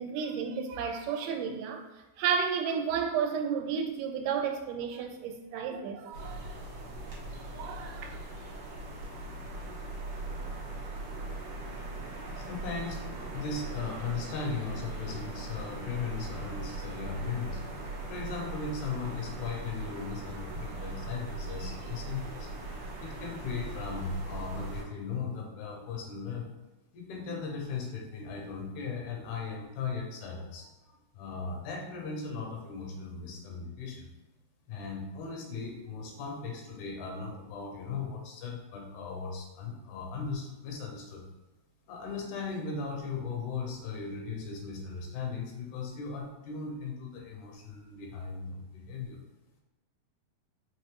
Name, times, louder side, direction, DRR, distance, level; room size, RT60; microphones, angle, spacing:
voice 1, 0.0-1.9 2.2-6.6 7.4-8.2, right 6 dB, 85° right, 2.1 m, -32 dB
sound 1, 6.1-24.8, right 2 dB, 65° right, 1.2 m, -40 dB
voice 2, 12.4-17.6 18.1-22.5 23.0-26.5 26.9-34.1 34.7-41.3 41.9-49.2, left 4 dB, 80° left, 1.9 m, -37 dB
5.5 x 3.1 x 3.0 m
omnidirectional pair, 3.7 m